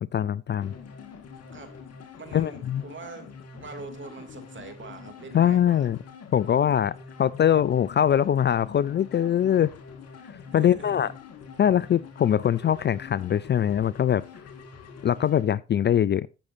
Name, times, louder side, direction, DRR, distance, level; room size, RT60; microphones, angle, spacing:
voice 1, 0.1-0.7 2.3-2.8 5.3-6.0 6.3-6.9 7.2-9.7 10.5-11.1 11.6-14.2 15.0-16.3, left 9 dB, 40° left, 0.4 m, -22 dB
sound 1, 0.6-15.5, left 5 dB, 60° left, 1.9 m, -45 dB
voice 2, 2.2-5.9 10.5-11.1, right 4 dB, 40° right, 2.9 m, -43 dB
16.0 x 6.4 x 2.7 m
supercardioid pair, 60°, 29 cm